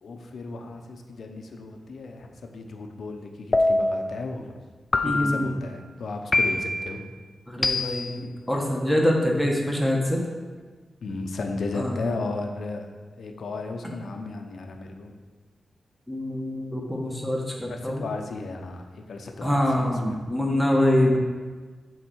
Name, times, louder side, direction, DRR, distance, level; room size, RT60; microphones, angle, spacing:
voice 1, 0.0-4.6 5.0-7.0 11.0-12.9 13.1-15.1 17.7-20.2, left 3 dB, 75° left, 4 dB, 0.8 m, -34 dB
sound 1, 3.5-4.1 4.9-5.5 6.3-6.9 7.6-8.2, left 2 dB, 35° left, 0.5 m, -24 dB
voice 2, 5.0-5.5 7.5-10.2 11.7-12.0 16.1-18.1 19.4-21.2, left 1 dB, 5° left, -2 dB, 1.5 m, -24 dB
7.2 x 4.1 x 6.2 m, 1.4 s
cardioid pair, 60°, 0 cm